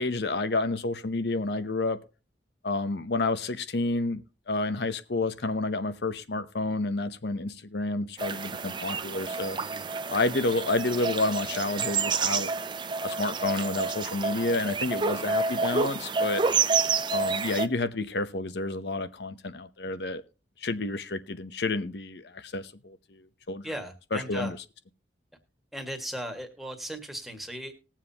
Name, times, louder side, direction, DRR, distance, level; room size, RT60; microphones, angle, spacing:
voice 1, 0.0-2.0 2.6-9.6 10.1-12.5 13.0-16.4 17.1-20.2 20.6-23.7 24.1-24.6, left 2 dB, 70° left, 11 dB, 0.8 m, -30 dB
sound 1, 8.2-17.7, right 5 dB, 25° right, 0.5 m, -29 dB
voice 2, 23.6-24.5 25.7-27.7, right 1 dB, ahead, 3 dB, 1.7 m, -37 dB
20.0 x 7.4 x 2.8 m, 0.32 s
head